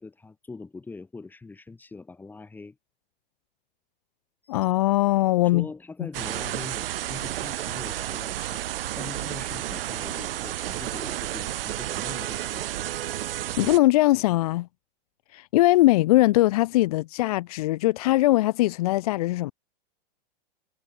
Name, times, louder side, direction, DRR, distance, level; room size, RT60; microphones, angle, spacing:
voice 1, 0.0-2.8 4.4-4.6 5.4-8.6 8.9-12.7, left 3 dB, 5° left, 3.9 m, -42 dB
voice 2, 4.5-5.7 13.6-14.7 15.3-19.5, left 17 dB, 40° left, 0.5 m, -21 dB
sound 1, 6.1-13.8, right 13 dB, 75° right, 1.3 m, -31 dB
supercardioid pair, 165°, 29 cm